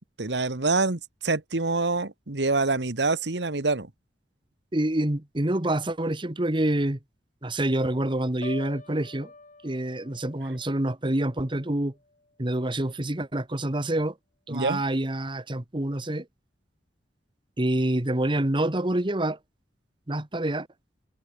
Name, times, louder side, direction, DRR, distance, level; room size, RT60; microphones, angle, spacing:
voice 1, 0.2-3.9 14.5-14.8, right 3 dB, 75° right, 1.6 m, -26 dB
voice 2, 4.7-7.0 7.4-9.3 9.6-11.9 12.4-14.1 14.5-16.3 17.6-19.4 20.1-20.7, right 1 dB, 30° right, 1.4 m, -27 dB
Piano, 8.4-12.4 12.8-13.1, left 2 dB, 45° left, 4.1 m, -47 dB
head